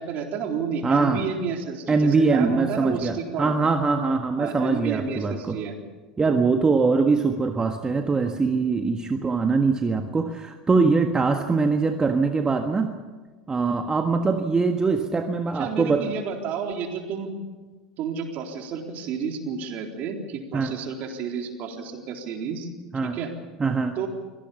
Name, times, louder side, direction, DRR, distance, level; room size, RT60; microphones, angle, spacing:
voice 1, 0.0-3.6 4.4-5.7 15.5-17.3 18.0-22.7 23.0-23.3 24.0-24.1, right 6 dB, 50° right, 3 dB, 3.9 m, -31 dB
voice 2, 0.8-1.2 1.9-5.6 6.2-12.9 13.5-16.0 20.5-20.7 22.9-23.2 23.6-23.9, right 4 dB, 20° right, 5 dB, 1.6 m, -22 dB
24.5 x 18.0 x 7.1 m, 1.3 s
hypercardioid pair, 75°, 4 cm